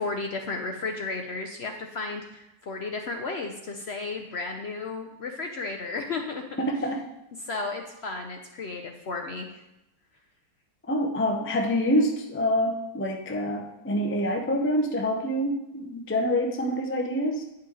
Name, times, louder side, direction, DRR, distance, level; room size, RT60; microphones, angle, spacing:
voice 1, 0.0-6.4 7.4-9.6, left 3 dB, 60° left, 4 dB, 0.7 m, -33 dB
voice 2, 6.6-7.0 10.9-17.4, equal, 20° left, 2 dB, 0.3 m, -26 dB
9.3 x 5.5 x 3.9 m, 0.92 s
omnidirectional pair, 1.7 m